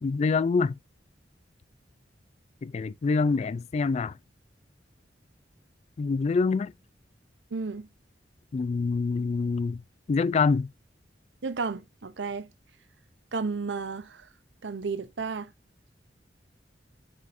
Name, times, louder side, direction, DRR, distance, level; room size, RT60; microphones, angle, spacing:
voice 1, 0.0-0.7 2.6-4.1 6.0-6.7 8.5-9.8 10.1-10.7, left 4 dB, 35° left, 0.3 m, -25 dB
voice 2, 7.5-7.9 11.4-12.5 13.3-14.3 14.6-15.5, right 4 dB, 75° right, 0.7 m, -32 dB
7.4 x 6.1 x 2.6 m
head